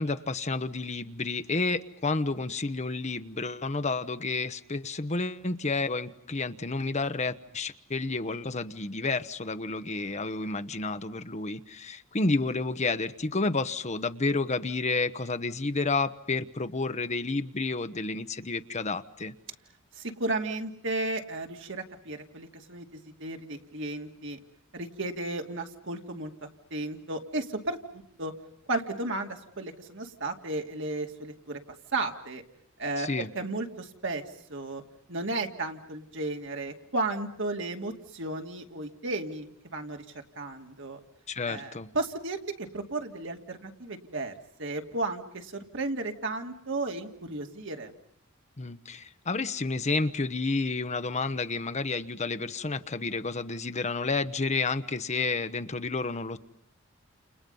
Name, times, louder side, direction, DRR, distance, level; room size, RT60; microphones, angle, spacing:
voice 1, 0.0-19.3 33.0-33.3 41.3-41.9 48.6-56.4, left 3 dB, 35° left, 10 dB, 1.0 m, -30 dB
voice 2, 19.9-24.4 24.7-28.3 28.7-31.6 31.9-32.4 32.8-34.2 34.5-34.8 35.1-40.0 40.4-41.0 41.5-44.3 44.6-47.9, right 2 dB, 65° right, 4 dB, 2.6 m, -34 dB
30.0 x 29.0 x 5.5 m, 0.68 s
head